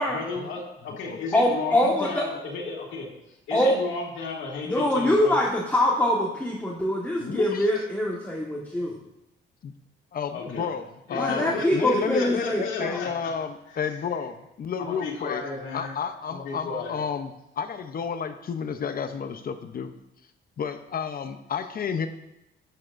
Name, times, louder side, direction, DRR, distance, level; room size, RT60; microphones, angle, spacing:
voice 1, 0.0-5.4 10.3-10.7 11.1-13.3 13.7-14.0 14.8-17.0, left 3 dB, 80° left, -2 dB, 2.2 m, -34 dB
voice 2, 1.3-2.2 3.5-3.7 4.7-9.0 11.1-12.9, left 1 dB, 10° left, -3 dB, 1.4 m, -24 dB
voice 3, 7.2-7.7 9.6-9.7 10.1-15.4 15.7-19.9 20.6-22.1, left 6 dB, 50° left, 8 dB, 0.7 m, -31 dB
12.0 x 8.9 x 2.6 m, 0.89 s
cardioid pair, 90°, 20 cm